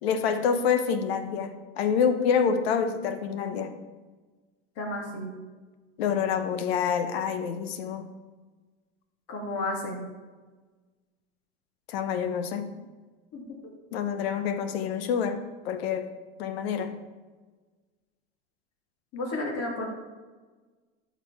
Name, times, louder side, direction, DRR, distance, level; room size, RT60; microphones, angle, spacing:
voice 1, 0.0-3.7 6.0-8.1 11.9-12.7 13.9-16.1 16.4-16.9, left 7 dB, 80° left, 9 dB, 1.0 m, -27 dB
voice 2, 4.8-5.3 9.3-10.0 13.3-13.7 19.1-19.9, left 2 dB, 50° left, -1 dB, 2.9 m, -32 dB
12.0 x 6.1 x 3.6 m, 1.3 s
supercardioid pair, 105°, 30 cm